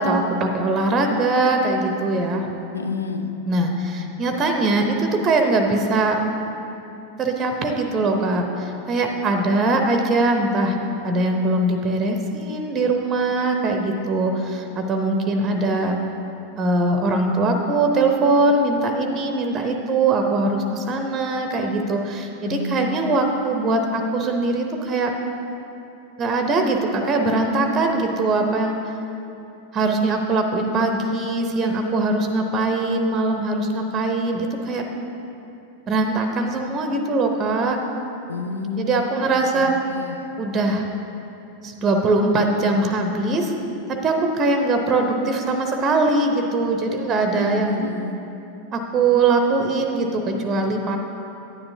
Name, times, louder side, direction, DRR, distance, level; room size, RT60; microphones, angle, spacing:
voice 1, 0.0-2.5 3.5-6.2 7.2-10.8 11.0-16.0 16.6-25.1 26.2-28.9 29.7-34.8 35.9-37.8 38.8-39.7 40.4-40.9 41.6-43.5 43.9-47.8 48.7-51.0, right 2 dB, 25° right, 4 dB, 0.7 m, -21 dB
voice 2, 2.7-3.3 22.4-23.3 38.3-40.3 47.3-48.2, left 4 dB, 75° left, 6 dB, 0.5 m, -30 dB
9.9 x 9.5 x 2.7 m, 2.9 s
figure-of-eight pair, 90°, 0 cm